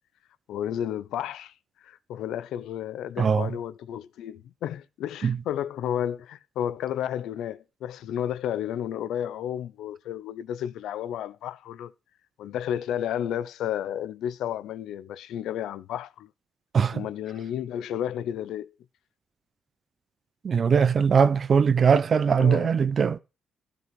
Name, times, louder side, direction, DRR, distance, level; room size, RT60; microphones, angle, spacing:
voice 1, 0.5-1.5 1.8-11.9 12.4-16.3 16.9-18.7 22.4-22.7, left 10 dB, 80° left, 0.8 m, -32 dB
voice 2, 3.2-3.6 5.2-5.4 16.7-17.1 20.4-23.2, right 6 dB, 45° right, 0.8 m, -21 dB
12.5 x 5.0 x 7.8 m
cardioid pair, 90°, 0 cm